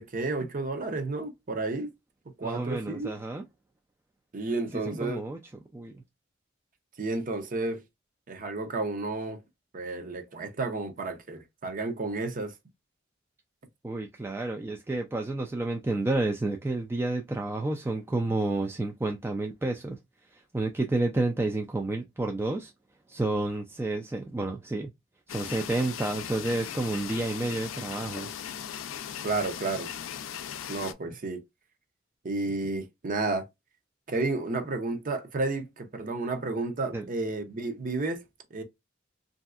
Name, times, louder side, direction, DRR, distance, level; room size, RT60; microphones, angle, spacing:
voice 1, 0.0-1.9 2.4-3.1 4.3-5.2 7.0-7.8 8.3-9.4 9.7-12.5 29.2-29.9 30.7-31.4 32.2-33.5 34.1-38.2 38.5-38.6, right 3 dB, 45° right, 0.6 m, -31 dB
voice 2, 2.4-3.4 4.7-5.4 5.7-6.0 13.8-20.0 20.3-22.7 23.1-24.9 25.3-28.3 36.9-37.0, right 2 dB, 10° right, 0.3 m, -30 dB
sound 1, 25.3-30.9, left 9 dB, 85° left, 0.4 m, -38 dB
3.1 x 2.6 x 2.3 m
head